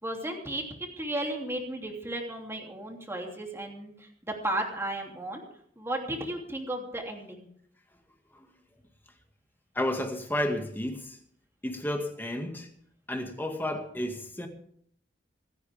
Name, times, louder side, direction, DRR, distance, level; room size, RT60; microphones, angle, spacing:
voice 1, 0.0-5.4 5.8-7.5, right 1 dB, 15° right, 3.0 m, -34 dB
voice 2, 9.8-11.2 11.6-12.7 13.1-14.5, left 1 dB, 10° left, 2.0 m, -31 dB
26.5 x 9.6 x 3.6 m
head